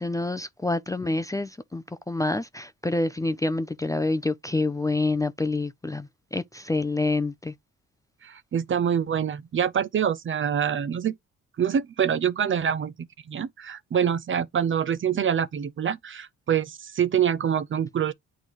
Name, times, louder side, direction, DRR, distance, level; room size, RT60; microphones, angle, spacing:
voice 1, 0.0-7.5, left 2 dB, 10° left, 0.5 m, -27 dB
voice 2, 8.2-11.2 11.6-18.1, right 8 dB, 40° right, 0.6 m, -25 dB
8.9 x 3.9 x 3.0 m
cardioid pair, 90°, 30 cm